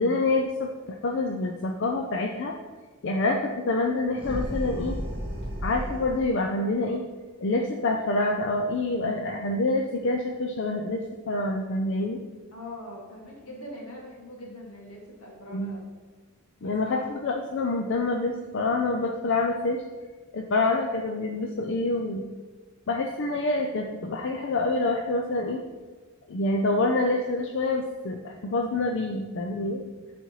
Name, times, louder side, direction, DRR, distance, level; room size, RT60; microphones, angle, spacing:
voice 1, 0.0-2.5 3.0-5.0 5.6-7.0 7.4-12.2 15.5-15.7 16.6-19.8 20.3-22.3 22.9-25.6 26.3-29.8, left 2 dB, 55° left, 2 dB, 0.5 m, -27 dB
sound 1, 4.1-6.3, equal, 25° right, 1.4 m, -33 dB
voice 2, 12.5-15.8 16.6-17.1, left 1 dB, 85° left, -3 dB, 2.1 m, -42 dB
10.5 x 4.2 x 3.1 m, 1.3 s
head